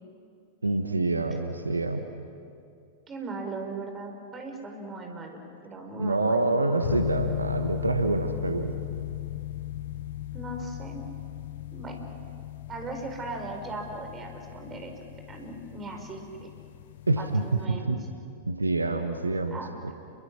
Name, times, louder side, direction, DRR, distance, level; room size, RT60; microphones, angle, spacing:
voice 1, 0.6-2.1 6.0-8.8 17.1-18.0 18.5-19.6, right 2 dB, 85° right, 7 dB, 1.3 m, -26 dB
voice 2, 3.1-6.8 10.3-11.0 11.7-12.0 12.7-14.9 15.3-16.5 17.2-17.9 19.5-19.9, right 2 dB, 25° right, 4 dB, 4.7 m, -38 dB
sound 1, 6.8-17.6, left 12 dB, 60° left, 1.0 m, -36 dB
29.5 x 23.0 x 6.2 m, 2.4 s
figure-of-eight pair, 95°, 0 cm